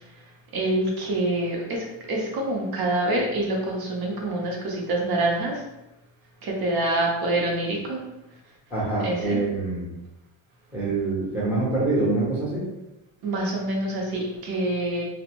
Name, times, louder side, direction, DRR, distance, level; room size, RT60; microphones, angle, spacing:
voice 1, 0.5-5.6 6.4-8.0 9.0-9.4 13.2-15.0, right 1 dB, 50° right, -1 dB, 0.7 m, -26 dB
voice 2, 8.7-9.8 10.7-12.6, right 2 dB, 5° right, -8 dB, 0.6 m, -25 dB
2.6 x 2.1 x 2.9 m, 0.95 s
cardioid pair, 175°, 47 cm